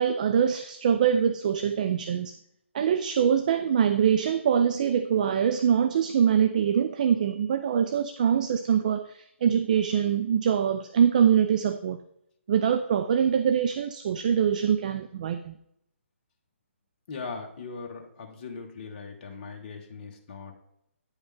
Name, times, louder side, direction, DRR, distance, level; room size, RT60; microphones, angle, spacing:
voice 1, 0.0-2.4 2.7-12.0 12.5-15.6, right 8 dB, 35° right, 10 dB, 0.3 m, -24 dB
voice 2, 17.1-20.5, left 4 dB, 35° left, 2 dB, 1.3 m, -39 dB
9.3 x 5.1 x 3.4 m, 0.76 s
figure-of-eight pair, 135°, 7 cm